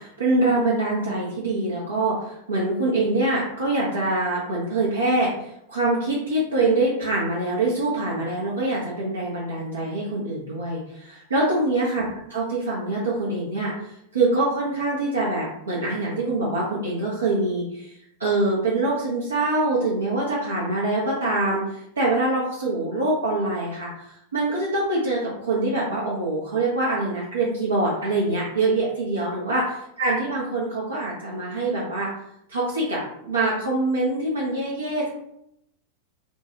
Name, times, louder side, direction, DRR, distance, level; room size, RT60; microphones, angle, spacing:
voice 1, 0.0-29.6 30.0-32.1 32.5-35.1, right 2 dB, 75° right, -5 dB, 0.7 m, -24 dB
4.1 x 2.3 x 2.8 m, 0.78 s
figure-of-eight pair, 90°, 0 cm